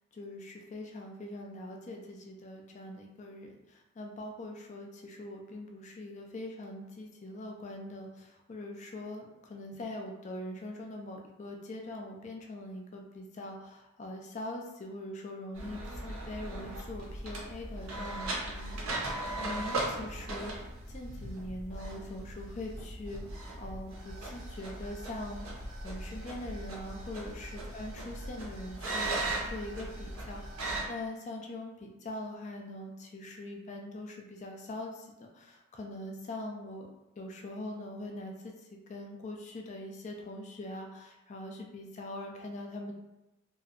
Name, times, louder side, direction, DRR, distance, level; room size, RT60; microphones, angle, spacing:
voice 1, 0.1-20.6 20.9-25.5 25.8-30.6 30.9-36.9 37.2-42.9, left 1 dB, 35° left, 1 dB, 0.3 m, -42 dB
sound 1, 15.5-30.9, right 2 dB, 90° right, 0.6 m, -38 dB
2.6 x 2.0 x 2.4 m, 0.98 s
head